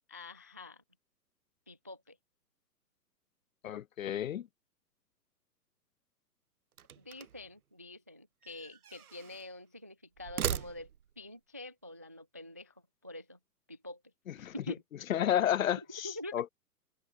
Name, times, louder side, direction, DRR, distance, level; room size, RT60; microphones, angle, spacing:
voice 1, 0.1-0.8 1.7-2.2 7.0-10.9 11.2-13.4 13.7-14.0 14.4-14.8 15.8-16.4, left 1 dB, 10° right, 0.4 m, -46 dB
voice 2, 3.6-4.5 14.4-14.5 15.1-16.5, left 10 dB, 55° left, 1.4 m, -31 dB
sound 1, 6.7-7.5 8.4-9.5 10.2-11.2, right 9 dB, 60° right, 2.0 m, -39 dB
figure-of-eight pair, 120°, 49 cm